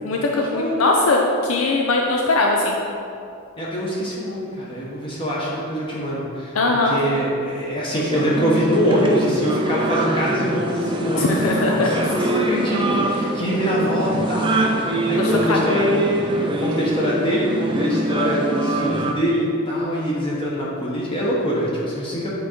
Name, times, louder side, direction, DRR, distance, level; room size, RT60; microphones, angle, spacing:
voice 1, 0.0-2.8 6.5-7.0 11.1-12.1 15.2-15.7, left 2 dB, 70° left, 0 dB, 0.5 m, -20 dB
voice 2, 3.6-6.6 6.8-22.3, equal, 25° left, -6 dB, 1.1 m, -24 dB
sound 1, 8.1-19.1, right 1 dB, 20° right, 0.4 m, -23 dB
8.4 x 3.7 x 4.4 m, 2.6 s
head